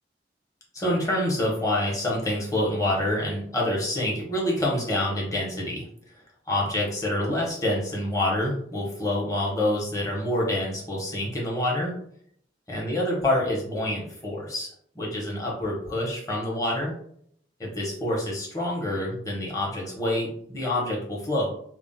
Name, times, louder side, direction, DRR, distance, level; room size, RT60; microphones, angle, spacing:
voice 1, 0.7-5.9 6.5-11.9 12.7-16.9 17.6-21.5, left 1 dB, 20° left, -3 dB, 0.9 m, -27 dB
2.4 x 2.0 x 3.8 m, 0.65 s
head